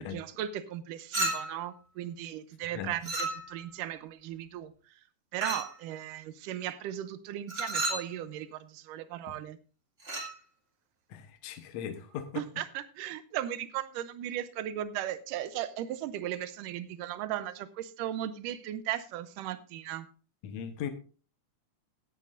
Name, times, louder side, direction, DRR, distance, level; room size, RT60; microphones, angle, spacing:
voice 1, 0.0-4.7 5.3-9.6 12.4-20.1, right 12 dB, 85° right, 2.3 m, -37 dB
Chink clink, 1.1-1.7 3.0-3.7 5.4-5.8 7.5-8.1 10.0-10.3, right 2 dB, 20° right, 1.9 m, -33 dB
voice 2, 11.1-12.4 20.4-20.9, left 8 dB, 65° left, 2.1 m, -38 dB
16.0 x 9.9 x 2.6 m
omnidirectional pair, 3.7 m